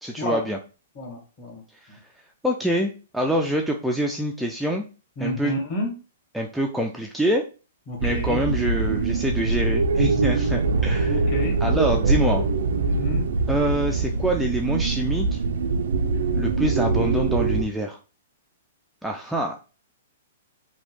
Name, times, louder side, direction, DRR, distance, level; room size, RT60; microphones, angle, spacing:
voice 1, 0.0-0.6 1.9-2.0 2.4-4.8 5.2-5.6 6.3-7.4 8.0-11.2 11.6-12.4 13.5-15.4 16.3-18.0 19.0-19.6, equal, ahead, 0 dB, 0.3 m, -25 dB
voice 2, 0.9-1.6 5.2-5.9 7.9-8.4 11.1-11.6 12.8-13.3, left 1 dB, 35° left, -1 dB, 1.6 m, -29 dB
sound 1, 8.0-17.6, right 4 dB, 75° right, 0.4 m, -23 dB
3.1 x 2.2 x 3.1 m, 0.34 s
hypercardioid pair, 135°, 0 cm